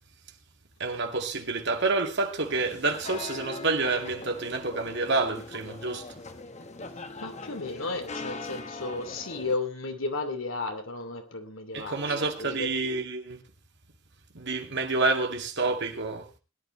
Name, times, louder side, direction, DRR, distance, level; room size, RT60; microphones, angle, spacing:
voice 1, 0.8-6.0 11.7-13.4 14.3-16.3, right 3 dB, 60° right, 2.2 m, -28 dB
sound 1, 2.4-9.6, left 3 dB, 35° left, 1.3 m, -41 dB
voice 2, 7.2-12.7, left 3 dB, 70° left, 2.7 m, -34 dB
21.0 x 10.5 x 3.1 m
head